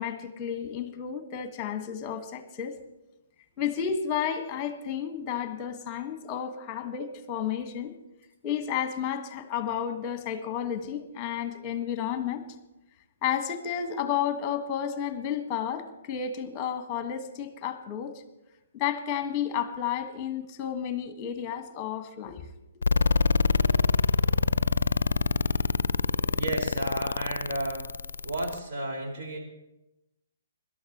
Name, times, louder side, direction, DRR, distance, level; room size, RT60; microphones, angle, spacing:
voice 1, 0.0-2.8 3.6-7.9 8.4-12.4 13.2-18.1 18.7-22.4, left 8 dB, 25° left, 8 dB, 1.5 m, -32 dB
sound 1, 22.8-28.6, left 5 dB, 70° left, 0.5 m, -25 dB
voice 2, 26.4-27.8 28.2-29.4, right 1 dB, 50° right, 0 dB, 4.9 m, -33 dB
25.0 x 12.5 x 3.0 m, 0.96 s
figure-of-eight pair, 125°, 0 cm